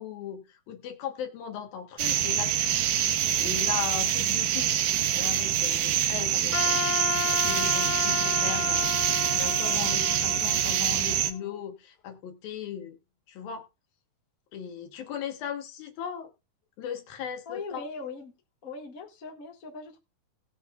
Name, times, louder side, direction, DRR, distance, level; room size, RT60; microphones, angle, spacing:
voice 1, 0.0-2.5 3.3-4.7 5.1-8.9 9.4-13.0 13.3-13.6 14.5-16.3 16.8-17.8, left 8 dB, 75° left, 3.2 m, -37 dB
sound 1, 2.0-11.3, right 10 dB, 75° right, 2.5 m, -25 dB
Wind instrument woodwind instrument, 6.5-11.6, left 7 dB, 60° left, 4.0 m, -32 dB
voice 2, 17.5-18.3 18.6-20.0, left 4 dB, 30° left, 1.8 m, -40 dB
19.5 x 7.0 x 2.4 m
omnidirectional pair, 4.2 m